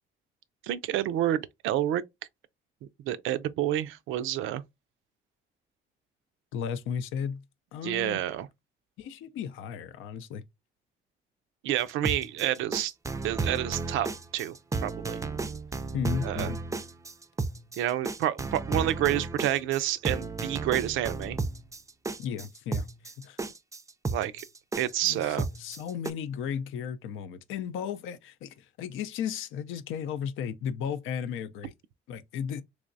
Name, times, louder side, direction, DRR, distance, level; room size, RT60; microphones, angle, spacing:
voice 1, 0.6-2.0 3.1-4.6 7.8-8.5 11.6-12.9 13.2-14.1 14.3-14.6 14.8-15.2 16.2-16.5 17.8-21.4 24.1-24.4 24.8-25.5, right 12 dB, 90° right, 0.4 m, -29 dB
voice 2, 6.5-7.4 7.7-8.2 9.0-10.4 15.9-16.6 22.2-23.4 25.0-31.7 32.1-32.6, left 8 dB, 85° left, 0.5 m, -35 dB
sound 1, 11.9-26.1, right 3 dB, 15° right, 0.4 m, -33 dB
3.4 x 3.1 x 2.5 m
cardioid pair, 90°, 20 cm